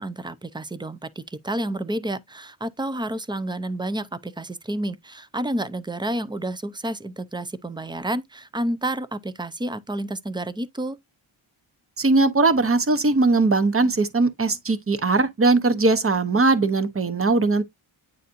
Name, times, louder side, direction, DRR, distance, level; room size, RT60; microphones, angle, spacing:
voice 1, 0.0-11.0, right 1 dB, 10° right, 0.5 m, -30 dB
voice 2, 12.0-17.6, right 3 dB, 25° right, 0.9 m, -20 dB
9.3 x 4.1 x 2.6 m
wide cardioid pair, 105°, 49 cm